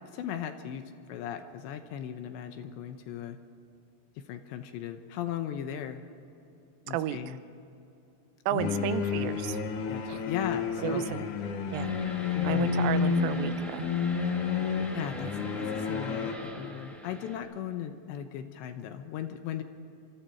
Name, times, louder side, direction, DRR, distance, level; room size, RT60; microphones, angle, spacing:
voice 1, 0.1-3.4 4.2-6.0 6.9-7.4 8.5-8.9 9.9-11.1 12.2-12.9 14.9-15.3 15.6-19.6, left 9 dB, 80° left, 8 dB, 2.8 m, -37 dB
voice 2, 6.9-7.4 8.5-9.6 10.1-10.2 10.8-11.3 11.7-11.9 12.4-13.9, right 12 dB, 90° right, 12 dB, 3.4 m, -33 dB
sound 1, 8.6-16.3, left 5 dB, 60° left, 2.1 m, -30 dB
sound 2, 11.7-17.4, equal, ahead, 1.4 m, -43 dB
27.5 x 26.0 x 4.5 m, 2.8 s
omnidirectional pair, 5.7 m